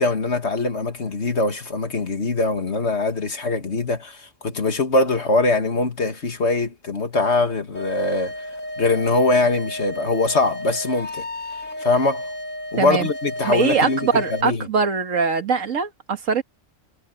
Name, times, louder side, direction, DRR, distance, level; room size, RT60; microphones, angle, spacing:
voice 1, 0.0-8.3 8.8-11.3 11.8-12.3 12.7-14.7, left 3 dB, 60° left, 2.3 m, -22 dB
sound 1, 7.7-14.4, left 1 dB, 85° left, 2.7 m, -33 dB
voice 2, 12.8-13.1 13.4-16.4, right 5 dB, 90° right, 2.0 m, -22 dB
omnidirectional pair, 1.3 m